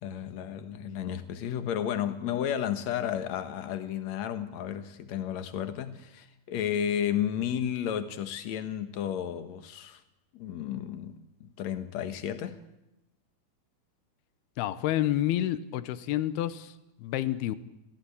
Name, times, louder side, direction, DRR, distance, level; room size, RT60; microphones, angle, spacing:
voice 1, 0.0-10.0 10.3-12.6, left 9 dB, 55° left, 2.3 m, -32 dB
voice 2, 14.6-17.6, left 13 dB, 85° left, 3.0 m, -29 dB
30.0 x 15.0 x 8.6 m
omnidirectional pair, 4.4 m